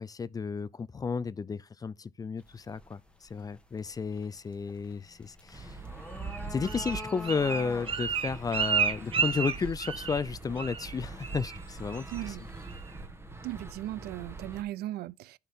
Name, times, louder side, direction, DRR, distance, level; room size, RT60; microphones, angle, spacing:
voice 1, 0.0-5.8 6.5-12.5, left 5 dB, 20° left, 0.4 m, -33 dB
sound 1, 2.4-12.8, left 1 dB, 5° left, 1.2 m, -49 dB
sound 2, 5.5-14.6, right 3 dB, 15° right, 1.2 m, -43 dB
Bird, 6.2-10.3 10.6-10.9 11.2-11.6 11.9-12.3 12.7-12.8, right 6 dB, 30° right, 0.9 m, -31 dB
voice 2, 12.1-12.4 13.4-15.4, right 15 dB, 70° right, 0.4 m, -37 dB
11.0 x 4.3 x 3.6 m
cardioid pair, 110°, 17 cm